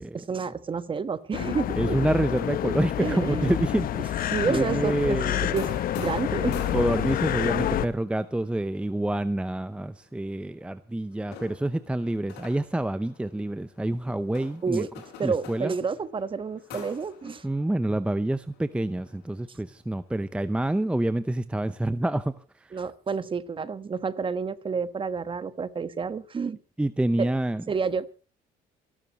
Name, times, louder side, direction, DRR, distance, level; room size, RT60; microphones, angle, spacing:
voice 1, 0.0-2.0 3.0-3.5 4.3-6.6 14.6-14.9 15.2-17.4 22.7-26.6 27.2-27.3 27.7-28.1, right 5 dB, 30° right, 1.3 m, -30 dB
sound 1, 1.3-7.9, left 12 dB, 60° left, 0.9 m, -28 dB
voice 2, 1.8-4.1 4.5-5.6 6.7-14.9 15.2-15.7 17.4-22.7 26.8-27.7, right 1 dB, 5° right, 0.7 m, -27 dB
sound 2, 2.3-10.7 11.1-20.0 20.5-21.0, left 6 dB, 90° left, 6.7 m, -47 dB
27.5 x 12.5 x 3.1 m
cardioid pair, 110°, 17 cm